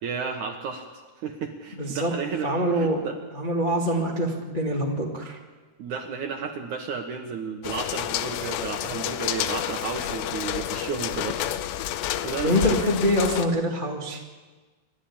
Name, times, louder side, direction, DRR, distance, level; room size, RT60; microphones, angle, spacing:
voice 1, 0.0-3.2 3.9-4.0 5.8-11.4 12.2-12.8, right 6 dB, 65° right, 4 dB, 2.0 m, -33 dB
voice 2, 1.7-2.1 2.4-3.0 3.3-5.4 12.4-14.2, equal, 50° left, -1 dB, 0.5 m, -24 dB
sound 1, 7.6-13.5, left 12 dB, 85° left, 3.0 m, -30 dB
28.0 x 12.0 x 8.6 m, 1.4 s
omnidirectional pair, 4.9 m